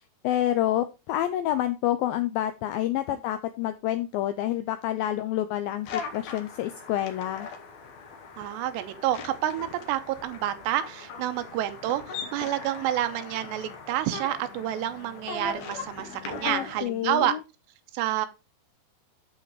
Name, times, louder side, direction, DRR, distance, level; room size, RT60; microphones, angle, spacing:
voice 1, 0.2-7.5 16.4-17.4, left 12 dB, 90° left, 10 dB, 2.0 m, -28 dB
sound 1, 5.8-16.8, left 5 dB, 70° left, 1.6 m, -40 dB
voice 2, 8.4-17.3 17.9-18.3, right 13 dB, 85° right, 10 dB, 3.0 m, -29 dB
11.5 x 4.1 x 4.6 m, 0.28 s
omnidirectional pair, 4.8 m